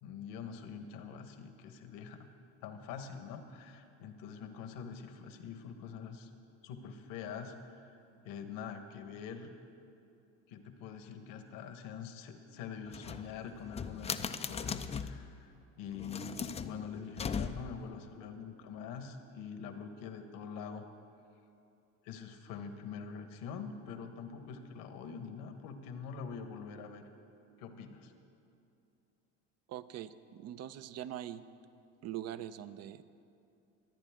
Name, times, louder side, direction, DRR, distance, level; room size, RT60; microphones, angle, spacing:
voice 1, 0.0-2.3 2.6-6.3 6.6-8.0 8.2-9.6 10.5-20.8 22.0-27.0 27.6-28.1, left 6 dB, 65° left, 7 dB, 1.4 m, -45 dB
sound 1, 12.9-15.3 15.9-17.9, left 6 dB, 20° left, 0.5 m, -39 dB
voice 2, 29.7-31.4 32.0-33.0, right 11 dB, 45° right, 14 dB, 0.6 m, -42 dB
22.5 x 9.1 x 3.6 m, 2.6 s
supercardioid pair, 90°, 36 cm